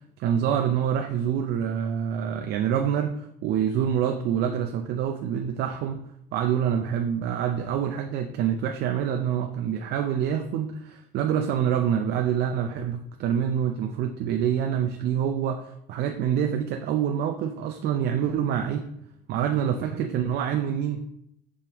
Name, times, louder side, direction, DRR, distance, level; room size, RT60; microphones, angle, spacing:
voice 1, 0.2-6.0 6.3-18.9 19.3-21.0, right 9 dB, 75° right, 6 dB, 0.5 m, -26 dB
6.9 x 5.0 x 3.0 m, 0.77 s
cardioid pair, 110°, 17 cm